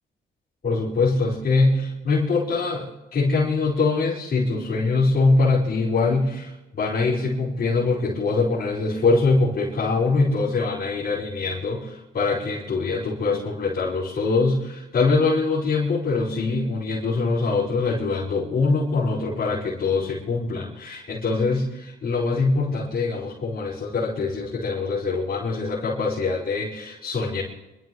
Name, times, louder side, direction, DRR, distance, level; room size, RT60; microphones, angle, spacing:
voice 1, 0.6-2.9 3.1-27.4, left 3 dB, 55° left, -10 dB, 5.5 m, -23 dB
27.5 x 13.0 x 3.2 m, 1.0 s
cardioid pair, 90°, 20 cm